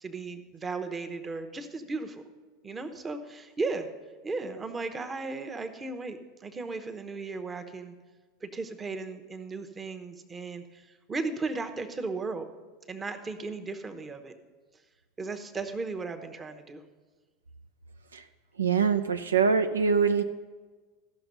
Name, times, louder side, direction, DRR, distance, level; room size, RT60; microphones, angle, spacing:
voice 1, 0.0-2.2 2.6-3.9 4.2-7.9 8.4-12.5 12.9-14.3 15.2-16.8, right 3 dB, 25° right, 7 dB, 0.9 m, -36 dB
voice 2, 18.6-20.2, right 5 dB, 90° right, 9 dB, 0.4 m, -24 dB
14.0 x 6.0 x 5.3 m, 1.4 s
hypercardioid pair, 85°, 0 cm